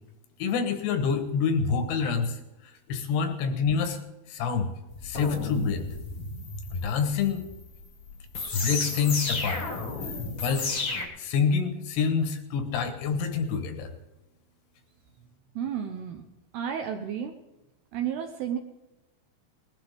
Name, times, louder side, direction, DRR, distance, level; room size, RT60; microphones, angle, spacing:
voice 1, 0.4-2.4 2.9-4.0 4.3-4.7 5.0-5.8 6.7-7.4 8.5-9.6 10.4-10.7 11.2-13.9, left 6 dB, 75° left, 7 dB, 3.0 m, -27 dB
sound 1, 4.9-11.0, left 3 dB, 50° left, 1.6 m, -33 dB
voice 2, 15.6-16.2 16.5-17.4 17.9-18.6, right 8 dB, 75° right, 5 dB, 2.5 m, -32 dB
20.0 x 12.0 x 3.5 m, 0.99 s
omnidirectional pair, 5.2 m